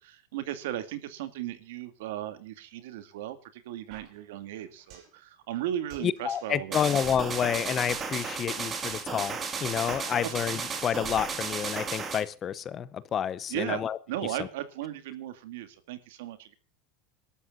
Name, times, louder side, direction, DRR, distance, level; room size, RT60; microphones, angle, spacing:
voice 1, 0.0-7.2 10.2-10.3 13.5-16.5, right 12 dB, 75° right, 2.6 m, -36 dB
sound 1, 3.9-5.2 5.4-5.5 5.9-6.6 6.9-9.2 9.4-9.6 9.9-10.6 10.9-11.9, right 8 dB, 45° right, 5.5 m, -50 dB
voice 2, 6.0-14.0 14.4-14.5, left 9 dB, 25° left, 0.8 m, -29 dB
sound 2, 6.7-12.2, right 5 dB, 20° right, 2.1 m, -34 dB
27.0 x 13.0 x 2.6 m
supercardioid pair, 165°, 0 cm